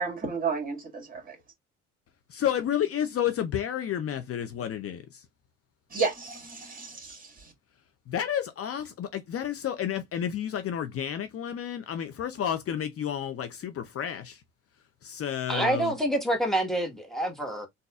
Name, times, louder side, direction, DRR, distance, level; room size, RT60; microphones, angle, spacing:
voice 1, 0.0-1.4 5.9-7.5, right 5 dB, 25° right, 1.9 m, -32 dB
voice 2, 2.3-5.2 8.1-14.4 15.0-15.9, left 9 dB, 45° left, 0.7 m, -31 dB
voice 3, 15.5-17.7, right 1 dB, ahead, 1.3 m, -27 dB
4.0 x 2.6 x 2.3 m
supercardioid pair, 80°, 32 cm